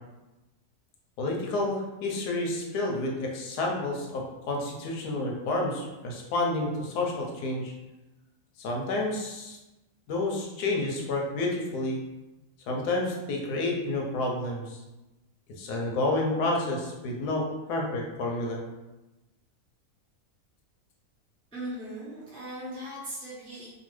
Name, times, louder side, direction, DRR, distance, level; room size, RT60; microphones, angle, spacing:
voice 1, 1.2-7.7 8.6-9.6 10.1-12.0 12.7-14.8 15.6-18.6, left 2 dB, 85° left, 0 dB, 1.2 m, -30 dB
voice 2, 21.5-23.7, right 1 dB, 5° left, -9 dB, 0.4 m, -38 dB
3.0 x 2.2 x 3.0 m, 1.0 s
omnidirectional pair, 1.7 m